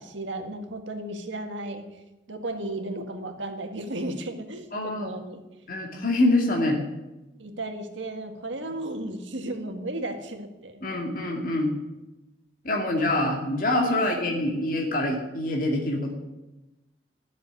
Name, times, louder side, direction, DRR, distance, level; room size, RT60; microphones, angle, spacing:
voice 1, 0.0-1.9 2.3-5.4 7.4-10.8 13.8-14.3, right 1 dB, 85° right, 5 dB, 1.9 m, -34 dB
voice 2, 4.7-5.1 5.7-6.8 10.8-11.7 12.6-16.1, left 1 dB, 45° left, 0 dB, 2.2 m, -25 dB
13.5 x 7.4 x 9.7 m, 1.0 s
head